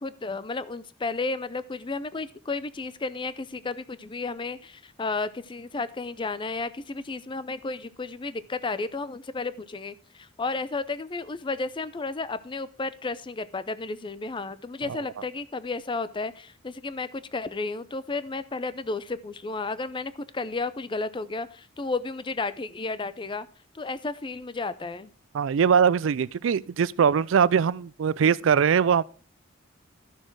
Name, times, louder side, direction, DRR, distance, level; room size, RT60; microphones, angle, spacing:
voice 1, 0.0-23.5 23.7-25.1, left 3 dB, 25° left, 0.5 m, -33 dB
voice 2, 25.3-29.0, right 7 dB, 75° right, 0.4 m, -21 dB
12.0 x 6.5 x 4.6 m
head